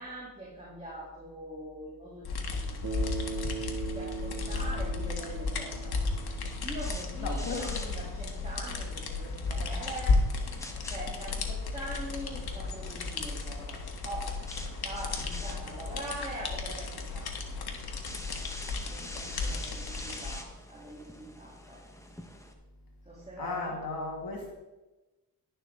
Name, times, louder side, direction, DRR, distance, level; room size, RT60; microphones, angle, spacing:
voice 1, 0.0-2.8 3.9-6.0 6.6-10.2 10.8-14.3 14.8-17.3 18.9-21.8 23.0-23.7, right 1 dB, 15° right, -6 dB, 3.0 m, -43 dB
sound 1, 2.2-20.3, left 3 dB, 85° left, 1.6 m, -34 dB
Bass guitar, 2.8-7.2, right 6 dB, 75° right, 2.1 m, -40 dB
sound 2, 6.1-22.5, left 1 dB, 10° left, 1.3 m, -48 dB
voice 2, 7.2-8.2 10.8-10.9 19.3-19.5 23.4-24.5, left 3 dB, 70° left, 0 dB, 2.3 m, -37 dB
11.0 x 11.0 x 3.7 m, 1.1 s
wide cardioid pair, 120°, 37 cm